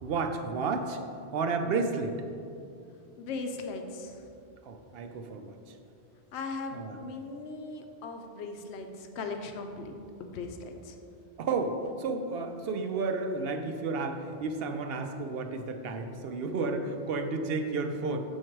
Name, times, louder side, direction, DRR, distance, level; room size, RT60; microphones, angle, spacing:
voice 1, 0.0-1.0 1.3-2.2 4.6-5.6 6.7-7.0 11.4-18.2, right 4 dB, 70° right, 6 dB, 0.8 m, -32 dB
voice 2, 3.2-4.2 6.3-9.9 10.2-11.0, left 3 dB, 85° left, 5 dB, 0.9 m, -38 dB
7.3 x 4.6 x 4.5 m, 2.5 s
omnidirectional pair, 1.1 m